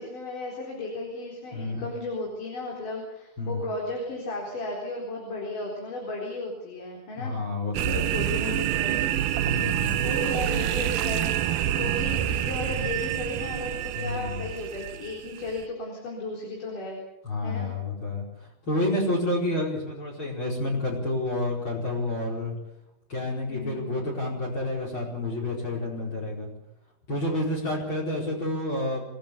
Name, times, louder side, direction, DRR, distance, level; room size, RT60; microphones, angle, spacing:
voice 1, 0.0-7.4 7.9-9.2 9.9-11.3 11.8-17.0 17.4-17.7 23.5-24.0, left 2 dB, 55° left, -1 dB, 5.7 m, -34 dB
voice 2, 1.5-1.9 3.4-3.7 7.1-8.1 9.4-10.1 14.0-14.5 17.2-22.6 23.1-26.5 27.1-29.0, left 2 dB, 30° left, -2 dB, 5.3 m, -29 dB
sound 1, 7.7-15.6, right 11 dB, 75° right, 2.6 m, -27 dB
26.5 x 18.0 x 7.0 m, 0.88 s
omnidirectional pair, 4.5 m